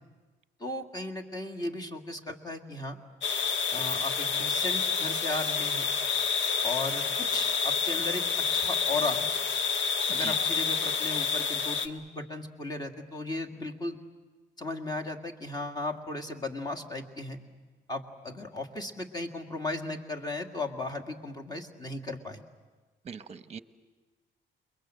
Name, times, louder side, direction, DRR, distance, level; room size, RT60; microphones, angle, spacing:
voice 1, 0.6-3.0 3.7-5.9 6.6-9.3 10.1-14.0 14.6-17.4 17.9-22.4, left 2 dB, 20° left, 2 dB, 1.9 m, -36 dB
sound 1, 3.2-11.9, left 6 dB, 75° left, 1.4 m, -28 dB
voice 2, 23.0-23.6, right 6 dB, 35° right, 11 dB, 0.9 m, -40 dB
28.5 x 22.5 x 7.7 m, 1.3 s
cardioid pair, 135°, 20 cm